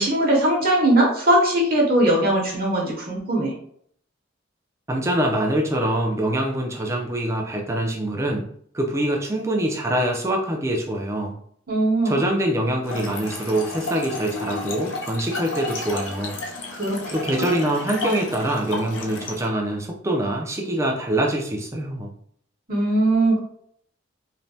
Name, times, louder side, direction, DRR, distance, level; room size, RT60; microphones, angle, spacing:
voice 1, 0.0-3.5 11.7-12.2 16.7-17.1 22.7-23.4, right 1 dB, 50° right, -2 dB, 0.8 m, -20 dB
voice 2, 4.9-8.5 8.7-11.4 12.0-16.4 17.1-22.1, right 1 dB, 15° right, 1 dB, 0.4 m, -24 dB
Trickle dribble / Fill (with liquid), 12.8-19.5, left 2 dB, 75° left, 0.5 m, -32 dB
3.1 x 2.2 x 2.7 m, 0.63 s
head